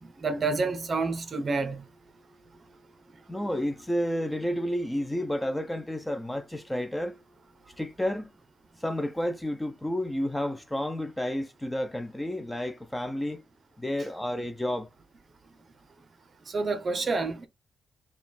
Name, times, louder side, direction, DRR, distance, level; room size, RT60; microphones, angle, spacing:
voice 1, 0.0-1.8 6.3-6.4 16.5-17.5, right 3 dB, 35° right, 0.9 m, -29 dB
voice 2, 3.3-7.1 7.8-8.3 8.8-13.4 13.8-14.9, left 1 dB, 10° left, 0.4 m, -30 dB
4.7 x 2.3 x 3.6 m
cardioid pair, 130°, 0 cm